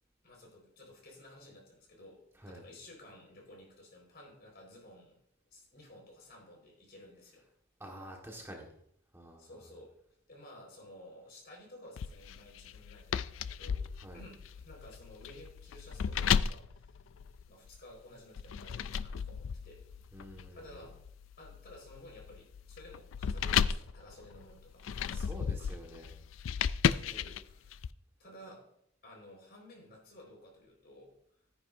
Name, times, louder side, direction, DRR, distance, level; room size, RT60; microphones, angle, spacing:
voice 1, 0.2-5.2 5.5-7.5 9.4-10.0 10.3-13.8 14.1-17.0 17.5-19.9 20.5-21.0 21.4-25.7 26.9-27.8 28.2-28.7 29.0-31.2, left 1 dB, 55° left, -1 dB, 4.6 m, -54 dB
voice 2, 7.8-8.7 9.1-9.5 14.0-14.2 20.1-20.9 25.1-26.2 27.1-27.3, equal, 15° right, 0 dB, 1.5 m, -48 dB
sound 1, 12.0-17.8 18.4-27.9, left 7 dB, 70° left, 0.4 m, -35 dB
13.0 x 9.8 x 2.6 m, 0.70 s
head